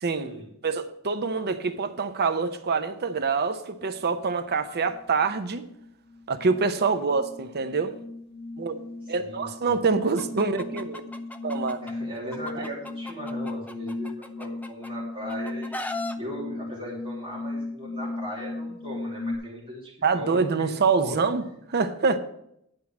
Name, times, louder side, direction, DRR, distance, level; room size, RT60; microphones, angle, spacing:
voice 1, 0.6-5.7 6.3-7.9 8.6-8.8 9.1-11.1 11.4-11.8 12.6-12.7 20.0-21.4 21.7-22.2, right 4 dB, 50° right, 0.7 m, -25 dB
sound 1, 3.8-4.1 4.6-19.4, left 2 dB, 60° left, 1.9 m, -37 dB
voice 2, 9.2-9.8 11.8-15.8 16.2-20.4 20.8-21.2, equal, 25° right, 2.7 m, -38 dB
Chicken rooster, 10.2-11.9 12.3-14.9 15.3-16.1, left 2 dB, 5° left, 0.5 m, -37 dB
10.5 x 4.6 x 7.1 m
head